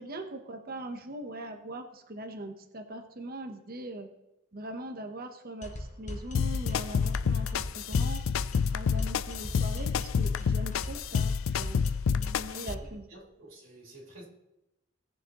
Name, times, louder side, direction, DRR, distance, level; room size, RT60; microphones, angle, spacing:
voice 1, 0.0-4.1 4.5-8.2 8.7-11.8 12.2-13.1, right 1 dB, 45° right, 1.0 m, -41 dB
sound 1, 5.6-13.0, left 1 dB, 35° left, 1.1 m, -40 dB
sound 2, 6.3-12.7, left 6 dB, 65° left, 0.4 m, -29 dB
voice 2, 9.7-10.0 12.8-14.3, right 1 dB, 65° right, 2.6 m, -51 dB
18.5 x 6.9 x 3.0 m
head